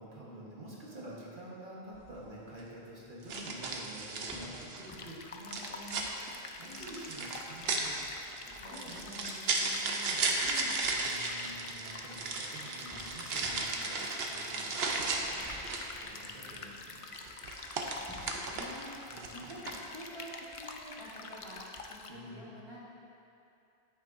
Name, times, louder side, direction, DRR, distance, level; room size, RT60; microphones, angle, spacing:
voice 1, 0.0-8.0 8.5-10.4 10.9-15.4 16.0-17.3 19.1-19.5 22.1-22.5, equal, 50° right, -6 dB, 1.5 m, -48 dB
sound 1, 1.9-2.2 3.3-4.9 5.5-16.0 17.1-18.8 19.2-19.9, right 3 dB, 70° right, 0.9 m, -35 dB
sound 2, 4.3-4.5 4.9-5.1 7.0-7.1 7.5-9.2 10.2-10.4 10.9-12.3 12.9-13.7 15.0-16.3 16.5-16.9 17.2-20.8 21.1-21.2, equal, 5° left, 1.1 m, -53 dB
sound 3, 4.9-22.1, left 3 dB, 50° left, 0.4 m, -47 dB
voice 2, 6.7-7.0 8.7-9.0 10.4-10.9 17.7-22.8, equal, 30° left, -6 dB, 1.1 m, -49 dB
9.0 x 8.4 x 2.6 m, 2.7 s
omnidirectional pair, 1.1 m